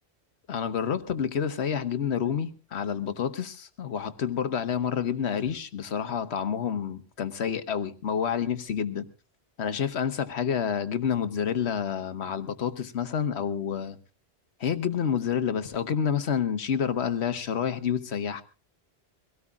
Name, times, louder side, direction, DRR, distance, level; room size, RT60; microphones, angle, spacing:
voice 1, 0.5-9.1 9.6-14.0 14.6-18.4, left 7 dB, 75° left, 11 dB, 1.3 m, -29 dB
24.0 x 17.5 x 2.4 m, 0.33 s
omnidirectional pair, 1.1 m